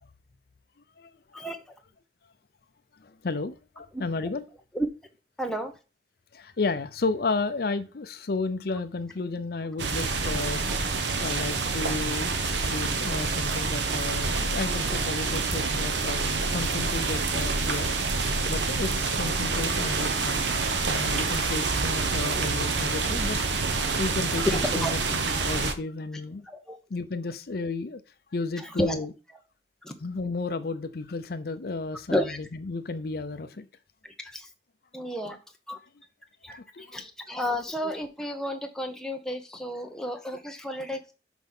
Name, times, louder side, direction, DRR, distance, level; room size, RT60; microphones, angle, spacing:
voice 1, 3.0-4.5 6.3-10.6 11.2-17.9 18.5-20.5 20.9-26.5 26.9-28.0 28.3-29.1 30.0-33.7 36.5-36.9, left 3 dB, 60° left, 0.6 m, -33 dB
voice 2, 5.4-5.7 24.4-24.9 26.5-26.8 28.6-29.0 29.8-29.9 32.1-32.4 34.2-34.5 34.9-35.4 35.7-35.8 36.4-41.1, equal, 5° left, 1.0 m, -31 dB
sound 1, 9.8-25.7, right 4 dB, 85° right, 1.0 m, -27 dB
6.2 x 4.9 x 5.5 m
head